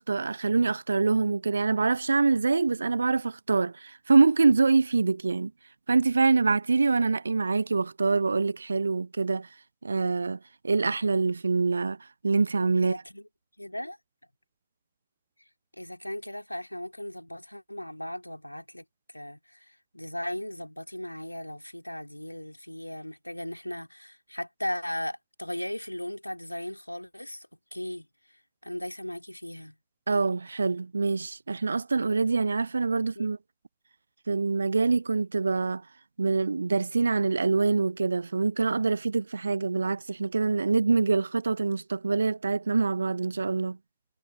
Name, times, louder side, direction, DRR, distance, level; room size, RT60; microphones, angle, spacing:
voice 1, 0.0-5.5 5.9-9.5 9.8-10.4 10.6-12.0 12.2-13.0 30.1-33.4 34.3-35.8 36.2-43.8, right 4 dB, 80° right, 0.7 m, -25 dB
voice 2, 12.7-13.3 13.6-14.0 15.7-29.8 32.9-33.3, left 1 dB, 90° left, 3.9 m, -37 dB
figure-of-eight pair, 90°, 0 cm